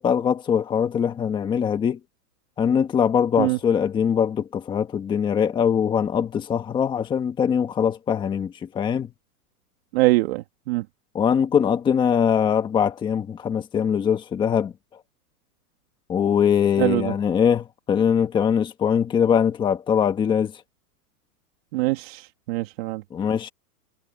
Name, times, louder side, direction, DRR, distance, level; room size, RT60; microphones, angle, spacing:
voice 1, 0.0-2.0 2.6-9.1 11.1-14.7 16.1-20.5 23.1-23.5, left 8 dB, 10° left, 1.3 m, -22 dB
voice 2, 9.9-10.8 16.8-17.1 21.7-23.0, right 20 dB, 40° right, 2.4 m, -23 dB
hypercardioid pair, 160°, 46 cm